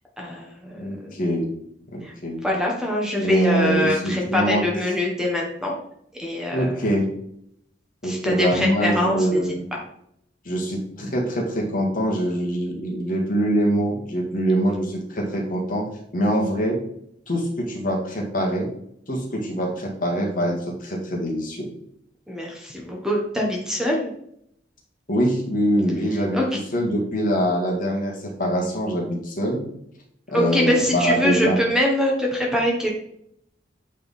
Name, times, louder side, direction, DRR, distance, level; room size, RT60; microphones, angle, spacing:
voice 1, 0.2-1.1 2.0-2.1 2.4-5.8 6.1-6.9 8.0-9.8 22.3-24.1 26.3-26.4 30.3-32.9, left 1 dB, 5° right, -1 dB, 1.2 m, -24 dB
voice 2, 0.7-1.5 1.9-2.4 3.2-4.6 6.5-7.1 8.0-9.6 10.5-15.9 16.1-16.8 17.3-18.7 19.1-21.7 25.1-26.4 26.7-29.6 30.3-31.6, right 1 dB, 50° left, -1 dB, 1.9 m, -24 dB
8.6 x 3.7 x 4.2 m, 0.71 s
head